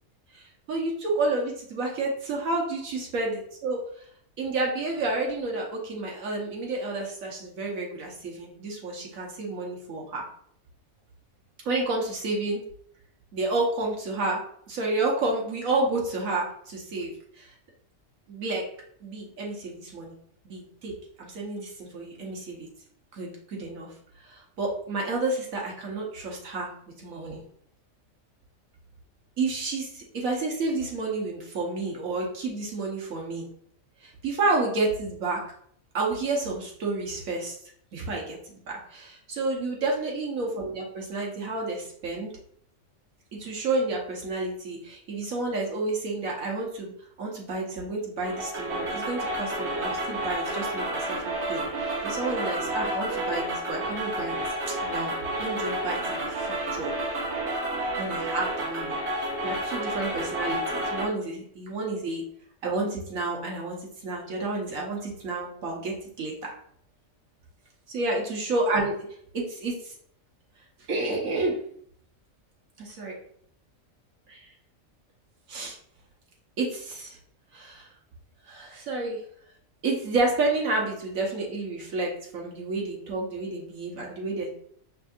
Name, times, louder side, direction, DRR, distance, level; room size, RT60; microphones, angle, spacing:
voice 1, 0.3-3.3 3.6-3.8 4.4-10.3 11.6-12.6 13.3-14.4 14.7-17.5 18.3-18.6 19.0-20.1 20.4-22.7 23.1-23.9 24.2-26.7 27.0-27.4 29.4-33.5 34.0-35.4 35.9-37.6 37.9-38.4 38.7-42.3 43.4-46.9 47.2-54.3 54.7-56.9 58.0-58.9 59.4-62.2 62.6-63.8 64.0-66.3 67.9-69.0 69.3-69.9 70.9-71.6 72.8-73.1 74.3-74.5 75.5-75.7 76.6-77.2 77.5-77.9 78.5-79.2 79.8-84.5, right 2 dB, 75° right, -1 dB, 1.4 m, -30 dB
sound 1, 48.2-61.1, right 1 dB, 55° right, 1.2 m, -30 dB
5.5 x 2.7 x 2.4 m, 0.63 s
omnidirectional pair, 1.5 m